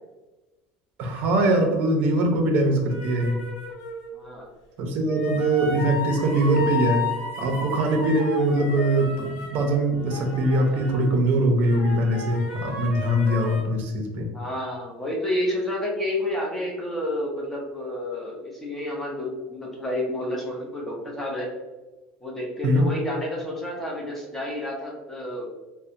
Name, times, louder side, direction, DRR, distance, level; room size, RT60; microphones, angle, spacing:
voice 1, 1.0-3.4 4.8-7.1 7.4-14.3 22.6-22.8, right 1 dB, 50° right, 4 dB, 0.5 m, -22 dB
sound 1, 2.9-4.1 5.0-11.2 11.6-13.6, left 4 dB, 80° left, 0.9 m, -33 dB
voice 2, 4.1-4.5 14.3-21.5 22.2-25.5, left 1 dB, 10° left, -3 dB, 0.5 m, -30 dB
2.7 x 2.0 x 2.5 m, 1.1 s
cardioid pair, 155°, 3 cm